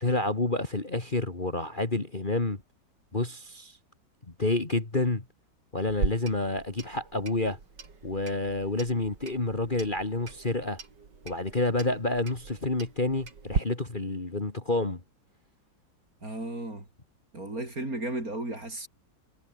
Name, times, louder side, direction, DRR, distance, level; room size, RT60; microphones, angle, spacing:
voice 1, 0.0-2.6 3.1-3.8 4.4-5.2 5.7-7.6 8.0-10.8 11.2-15.0, left 2 dB, 25° left, 2.5 m, -29 dB
Clock, 5.9-13.6, right 5 dB, 65° right, 3.5 m, -38 dB
voice 2, 16.2-16.9 17.3-18.9, right 2 dB, 45° right, 7.7 m, -34 dB
omnidirectional pair, 2.1 m